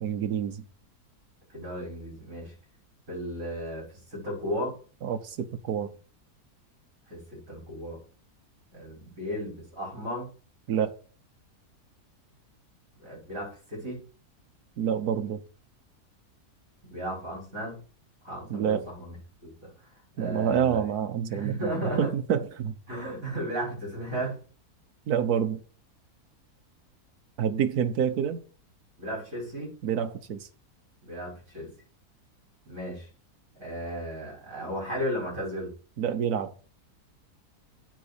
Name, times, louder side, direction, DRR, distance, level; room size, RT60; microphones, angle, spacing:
voice 1, 0.0-0.6 5.0-5.9 10.7-10.9 14.8-15.4 18.5-18.8 20.2-21.7 22.0-22.7 25.1-25.6 27.4-28.4 29.8-30.5 36.0-36.5, right 8 dB, 75° right, 1.5 m, -27 dB
voice 2, 1.5-2.5 3.1-4.8 7.1-8.0 8.7-10.3 13.0-14.0 16.8-17.8 18.2-19.2 19.4-19.7 20.2-20.8 21.3-22.1 22.9-24.4 29.0-29.8 31.0-31.7 32.6-33.1 33.6-35.7, equal, 55° right, 6.4 m, -35 dB
9.1 x 4.2 x 6.7 m
omnidirectional pair, 1.7 m